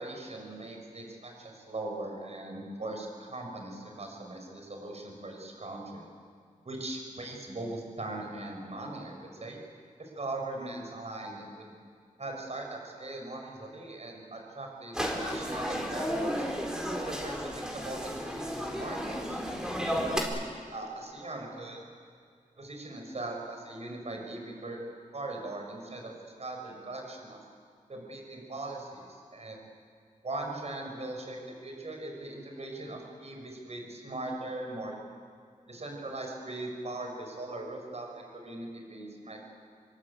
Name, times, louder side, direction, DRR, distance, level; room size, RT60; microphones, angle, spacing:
voice 1, 0.0-6.1 6.6-9.6 10.0-11.7 12.2-16.5 16.9-19.4 20.7-21.8 22.6-24.8 25.1-26.1 26.4-27.4 27.9-29.6 30.2-35.0 35.7-39.5, right 2 dB, 50° right, 2 dB, 5.8 m, -40 dB
sound 1, 14.9-20.2, equal, 5° right, 4.5 m, -33 dB
26.5 x 24.0 x 8.6 m, 2.1 s
wide cardioid pair, 100°, 14 cm